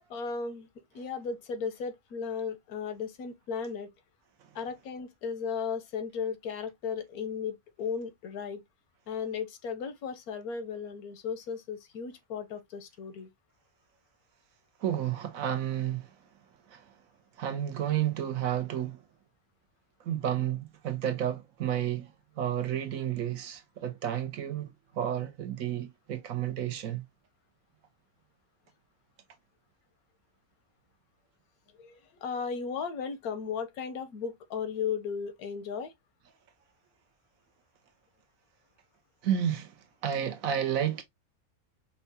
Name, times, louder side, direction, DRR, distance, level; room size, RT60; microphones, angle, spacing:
voice 1, 0.1-0.7 0.9-3.9 4.5-8.6 9.1-13.3 31.8-35.9, left 6 dB, 85° left, 1.3 m, -35 dB
voice 2, 14.8-16.1 16.7-16.9 17.4-19.0 20.0-27.0 39.2-41.0, right 10 dB, 70° right, 1.1 m, -31 dB
5.5 x 2.2 x 2.6 m
omnidirectional pair, 1.5 m